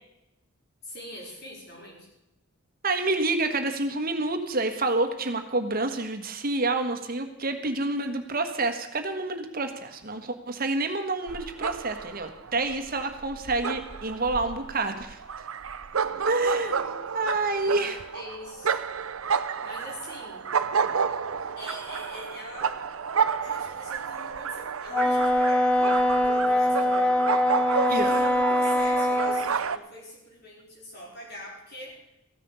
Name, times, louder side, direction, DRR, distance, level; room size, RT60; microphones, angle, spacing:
voice 1, 0.8-2.1 17.6-18.8 19.6-20.4 21.6-22.7 23.3-27.4 27.8-32.0, left 1 dB, 50° left, -2 dB, 5.0 m, -43 dB
voice 2, 2.8-15.2 16.3-16.9 17.1-17.9 27.9-28.1, right 2 dB, 45° right, 7 dB, 1.4 m, -28 dB
sound 1, 11.3-29.8, right 6 dB, 80° right, 0.7 m, -31 dB
Wind instrument woodwind instrument, 24.9-29.5, left 1 dB, 5° left, 0.7 m, -23 dB
15.0 x 9.4 x 7.0 m, 0.89 s
head